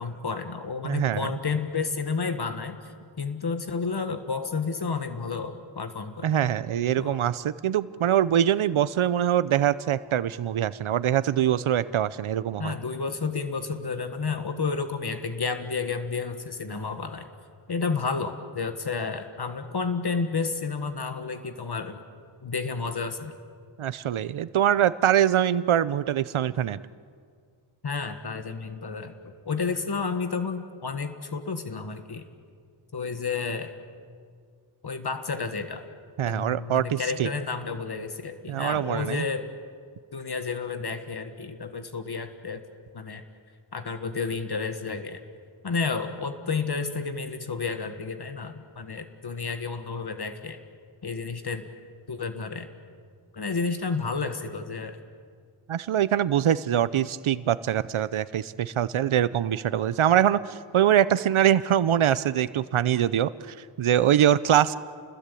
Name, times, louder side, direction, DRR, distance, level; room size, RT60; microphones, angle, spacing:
voice 1, 0.0-6.4 7.0-7.2 12.6-17.3 17.7-22.0 22.4-23.4 27.8-32.2 32.9-33.7 34.8-35.8 36.2-39.5 40.1-42.6 42.9-43.2 43.7-45.2 45.6-50.6 51.0-51.6 52.1-52.7 53.3-55.0 56.7-56.9, left 4 dB, 55° left, 8 dB, 1.5 m, -31 dB
voice 2, 0.8-1.3 6.2-12.7 23.8-26.8 36.2-37.3 38.5-39.3 55.7-64.8, right 10 dB, 85° right, 16 dB, 0.7 m, -23 dB
29.0 x 21.5 x 8.4 m, 2.1 s
wide cardioid pair, 125°, 47 cm